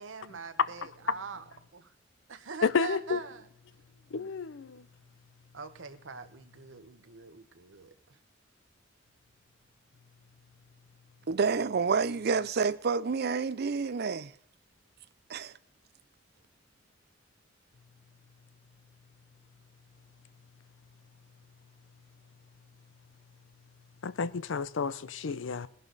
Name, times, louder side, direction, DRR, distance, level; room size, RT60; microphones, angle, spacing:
voice 1, 0.0-1.4 1.7-1.9 2.3-3.5 5.5-8.2, right 4 dB, 85° right, 1.1 m, -43 dB
voice 2, 2.6-3.2 4.1-4.8 24.0-25.7, left 5 dB, 75° left, 0.6 m, -31 dB
voice 3, 11.3-14.3 15.3-15.5, right 5 dB, 55° right, 0.5 m, -28 dB
19.0 x 11.0 x 4.0 m
head